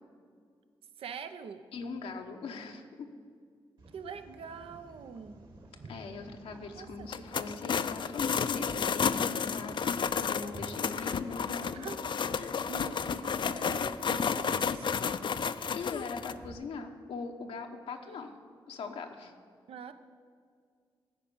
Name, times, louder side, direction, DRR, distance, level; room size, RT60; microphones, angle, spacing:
voice 1, 1.0-1.6 3.9-5.4 6.8-7.1 11.6-12.2 12.7-15.0 18.1-18.2 19.7-19.9, right 6 dB, 75° right, 10 dB, 0.6 m, -44 dB
voice 2, 1.7-3.1 5.9-11.9 12.4-12.6 15.7-18.3 18.7-19.3, left 4 dB, 85° left, 3 dB, 1.0 m, -41 dB
sound 1, 3.8-16.5, right 2 dB, 55° right, 2.0 m, -52 dB
sound 2, 7.1-16.3, left 6 dB, 55° left, 0.4 m, -32 dB
14.0 x 5.1 x 8.6 m, 2.1 s
supercardioid pair, 50°, 10 cm